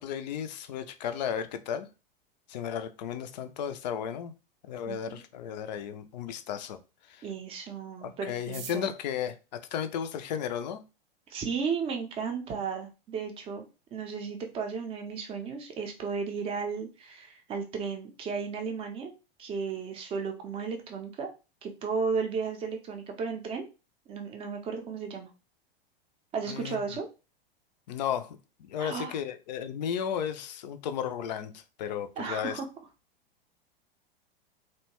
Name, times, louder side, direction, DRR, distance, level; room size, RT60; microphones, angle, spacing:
voice 1, 0.0-1.9 2.5-4.3 4.6-6.8 7.1-7.3 8.0-10.8 26.5-26.8 27.9-28.4 28.7-32.6, left 8 dB, 50° left, 0.4 m, -34 dB
voice 2, 4.9-5.2 7.2-8.9 11.3-13.6 13.9-19.1 19.4-21.3 21.6-23.7 24.1-25.3 26.3-27.1 28.8-29.2 32.2-32.7, right 5 dB, 20° right, 0.5 m, -34 dB
sound 1, 8.3-10.6 11.4-11.5 11.7-11.8 12.1-12.6 12.9-13.0 13.2-13.6 13.9-14.1 14.4-14.7, right 7 dB, 70° right, 0.5 m, -48 dB
2.7 x 2.1 x 2.9 m
figure-of-eight pair, 95°, 29 cm